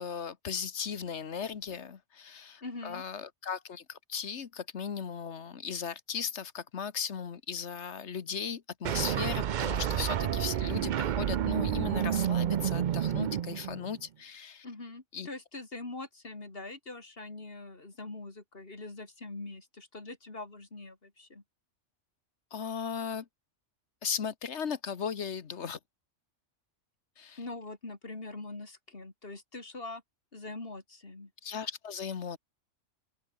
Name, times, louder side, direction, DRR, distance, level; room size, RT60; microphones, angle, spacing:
voice 1, 0.0-14.6 15.1-15.3 22.5-23.3 24.0-25.8 27.2-27.4 31.4-32.4, left 7 dB, 65° left, 1.5 m, -37 dB
voice 2, 2.6-3.0 14.6-21.4 27.4-30.0 30.3-31.3, left 2 dB, 50° left, 3.2 m, -43 dB
sound 1, 8.8-14.0, right 10 dB, 55° right, 0.5 m, -30 dB
open air
omnidirectional pair, 1.3 m